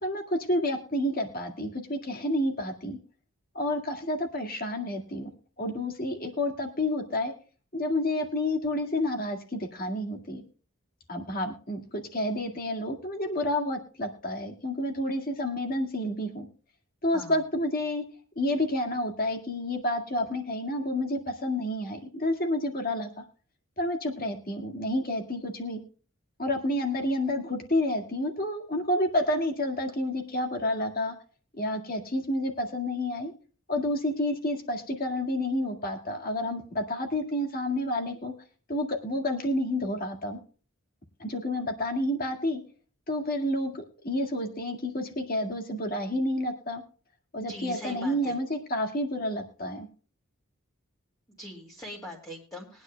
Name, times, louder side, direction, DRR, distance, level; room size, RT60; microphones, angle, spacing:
voice 1, 0.0-3.0 3.5-5.3 5.6-7.3 7.7-10.4 11.1-11.8 12.1-16.5 17.0-18.0 18.4-23.1 23.8-25.8 26.4-31.1 31.5-33.3 33.7-38.3 38.7-40.4 41.2-42.6 43.1-46.8 47.3-49.9, left 1 dB, 40° left, 4 dB, 1.8 m, -29 dB
voice 2, 47.5-48.3 51.4-52.8, left 1 dB, 15° left, -5 dB, 2.2 m, -41 dB
22.0 x 9.6 x 2.2 m, 0.39 s
head